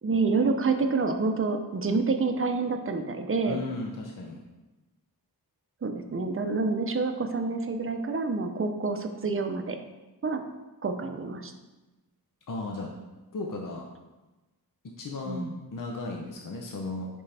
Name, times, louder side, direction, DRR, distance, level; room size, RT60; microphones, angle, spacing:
voice 1, 0.0-3.6 5.8-9.8 10.2-10.4 10.8-11.5 15.3-15.5, right 4 dB, 35° right, 6 dB, 0.7 m, -28 dB
voice 2, 3.5-4.4 12.5-12.9 13.3-13.8 15.0-15.5 15.7-17.1, left 3 dB, 55° left, 0 dB, 0.8 m, -35 dB
8.2 x 5.3 x 3.4 m, 1.1 s
wide cardioid pair, 130°, 38 cm